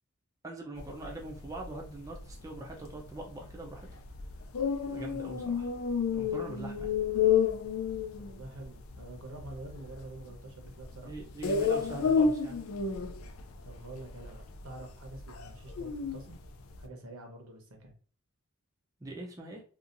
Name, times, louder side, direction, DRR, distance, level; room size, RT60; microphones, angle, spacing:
voice 1, 0.4-4.0 4.8-5.7 6.1-6.9 10.9-12.6 19.0-19.6, right 2 dB, 15° right, -1 dB, 0.4 m, -42 dB
sound 1, 0.8-16.9, left 6 dB, 70° left, 0.4 m, -32 dB
voice 2, 8.2-11.1 13.6-16.4 16.8-17.9, right 2 dB, 85° right, 2 dB, 0.9 m, -47 dB
2.8 x 2.4 x 2.5 m, 0.41 s
head